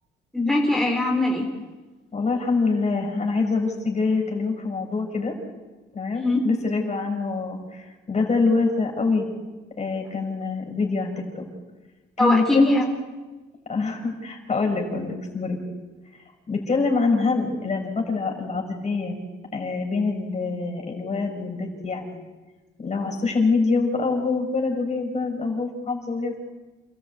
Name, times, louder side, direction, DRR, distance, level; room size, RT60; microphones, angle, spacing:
voice 1, 0.3-1.5 6.2-6.4 12.2-12.8, left 2 dB, ahead, -1 dB, 3.9 m, -21 dB
voice 2, 2.1-5.3 5.9-9.3 9.8-11.5 12.2-12.8 13.7-15.6 16.5-19.2 19.5-22.2 22.8-26.5, left 4 dB, 35° left, 2 dB, 6.2 m, -25 dB
28.5 x 14.0 x 8.5 m, 1.2 s
cardioid pair, 90°, 20 cm